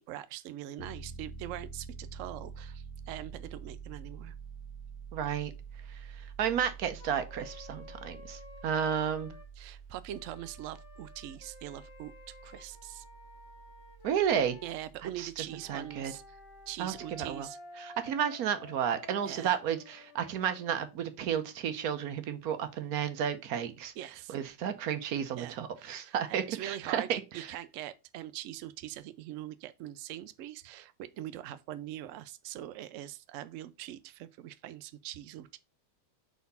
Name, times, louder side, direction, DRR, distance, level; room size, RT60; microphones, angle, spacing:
voice 1, 0.0-4.3 9.6-13.0 14.6-16.4 16.7-17.6 19.2-19.6 24.0-24.4 25.3-35.6, right 13 dB, 85° right, 0.6 m, -42 dB
Piano, 0.8-17.5, right 5 dB, 60° left, 1.4 m, -48 dB
voice 2, 5.1-5.5 5.9-6.0 6.4-9.3 14.0-14.6 15.2-15.3 15.7-16.1 16.8-17.5 17.8-23.9 24.3-27.5, right 8 dB, 65° right, 1.2 m, -32 dB
Wind instrument woodwind instrument, 7.0-9.5 10.1-14.8 15.4-20.8, left 4 dB, 45° left, 1.4 m, -52 dB
4.7 x 4.2 x 5.4 m
omnidirectional pair, 1.9 m